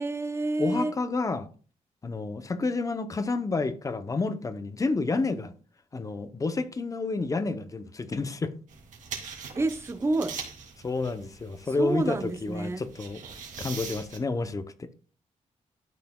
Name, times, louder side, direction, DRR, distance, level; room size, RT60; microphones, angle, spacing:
voice 1, 0.0-1.0 9.6-10.4 11.8-12.8, right 2 dB, 20° right, 0.7 m, -29 dB
voice 2, 0.6-1.5 2.0-5.5 5.9-8.6 10.8-13.2 13.6-14.9, left 3 dB, 25° left, 0.7 m, -30 dB
sound 1, 8.7-14.2, right 6 dB, 90° right, 2.3 m, -42 dB
12.0 x 6.6 x 2.3 m
wide cardioid pair, 135°, 13 cm